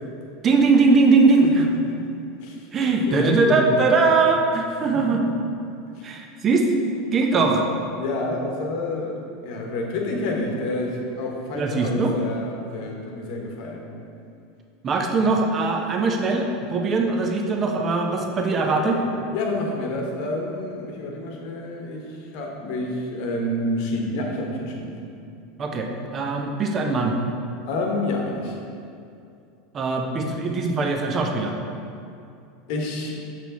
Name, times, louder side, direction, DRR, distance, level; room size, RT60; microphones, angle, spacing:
voice 1, 0.4-1.6 2.7-5.2 6.0-6.7 7.1-7.6 11.6-12.1 14.8-19.0 25.6-27.1 29.7-31.5, right 3 dB, 35° right, 2 dB, 0.8 m, -21 dB
voice 2, 3.1-3.9 5.9-6.0 7.3-7.5 8.0-9.2 9.4-13.9 18.7-19.0 19.3-22.0 22.3-24.9 27.6-28.5 32.7-33.3, left 2 dB, 55° left, 1 dB, 1.1 m, -28 dB
7.0 x 4.5 x 4.1 m, 2.5 s
figure-of-eight pair, 80°, 0 cm